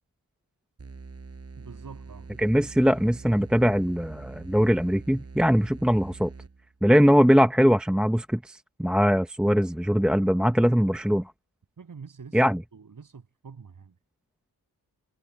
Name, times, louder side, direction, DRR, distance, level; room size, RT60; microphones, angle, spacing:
sound 1, 0.8-6.8, right 4 dB, 40° right, 7.1 m, -44 dB
voice 1, 1.6-2.3 11.8-13.9, right 5 dB, 60° right, 6.7 m, -46 dB
voice 2, 2.4-6.3 6.8-11.2 12.3-12.6, equal, ahead, 0.9 m, -21 dB
cardioid pair, 75°, 36 cm